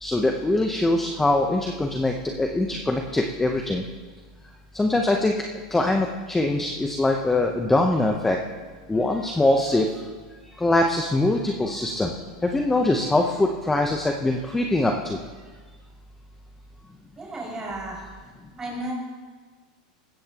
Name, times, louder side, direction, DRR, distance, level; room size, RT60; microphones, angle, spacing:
voice 1, 0.0-3.8 4.7-5.3 5.7-8.4 8.9-9.9 10.6-12.1 12.4-15.2, left 2 dB, 10° left, 3 dB, 0.8 m, -23 dB
voice 2, 17.2-18.0 18.6-18.9, right 1 dB, 15° right, -4 dB, 5.7 m, -33 dB
20.0 x 15.5 x 2.9 m, 1.4 s
supercardioid pair, 150°, 4 cm